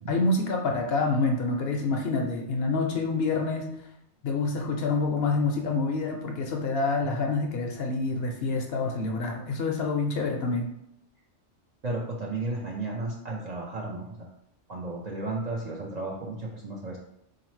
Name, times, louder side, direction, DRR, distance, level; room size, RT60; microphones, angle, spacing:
voice 1, 0.1-3.8 4.2-10.7, left 3 dB, 65° left, 2 dB, 0.7 m, -27 dB
voice 2, 11.8-14.3 14.7-17.0, right 2 dB, 50° right, -3 dB, 0.5 m, -33 dB
3.9 x 2.8 x 3.0 m, 0.77 s
omnidirectional pair, 1.2 m